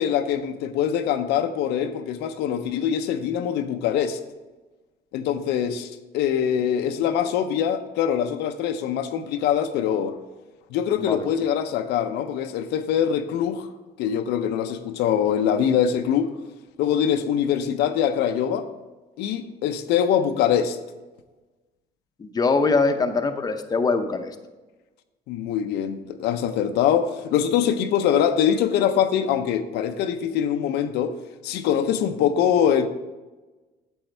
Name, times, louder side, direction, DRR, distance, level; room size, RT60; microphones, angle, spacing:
voice 1, 0.0-4.2 5.1-10.2 10.7-13.7 14.0-16.3 16.8-18.7 19.2-20.8 25.3-31.1 31.4-32.9, left 9 dB, 85° left, 0.6 m, -23 dB
voice 2, 22.2-24.3, left 4 dB, 25° left, 0.7 m, -22 dB
8.8 x 7.1 x 3.3 m
cardioid pair, 110°, 17 cm